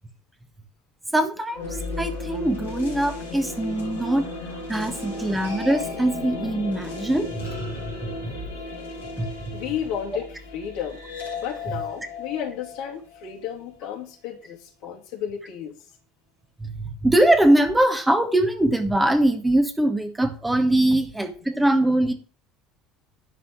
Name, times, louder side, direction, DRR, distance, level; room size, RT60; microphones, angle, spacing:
voice 1, 1.1-1.6 2.0-4.3 4.7-7.7 8.0-8.3 9.2-9.3 16.6-22.1, right 1 dB, 10° right, 6 dB, 1.7 m, -22 dB
sound 1, 1.5-13.7, left 3 dB, 80° left, 2.9 m, -35 dB
voice 2, 9.5-11.0 11.4-15.8, left 9 dB, 60° left, 0 dB, 2.6 m, -33 dB
11.0 x 4.3 x 7.7 m, 0.38 s
figure-of-eight pair, 65°, 0 cm